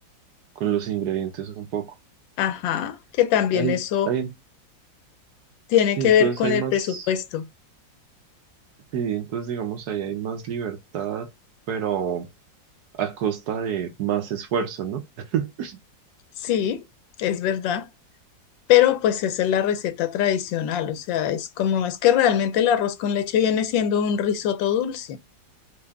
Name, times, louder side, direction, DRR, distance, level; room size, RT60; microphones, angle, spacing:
voice 1, 0.6-1.9 3.5-3.8 4.1-4.3 6.0-7.1 8.9-11.3 11.7-12.3 12.9-15.8, right 8 dB, 65° right, 1.2 m, -27 dB
voice 2, 2.4-4.1 5.7-7.5 16.4-16.8 17.2-17.9 18.7-25.2, left 10 dB, 90° left, 1.4 m, -22 dB
4.6 x 2.4 x 3.4 m
omnidirectional pair, 2.0 m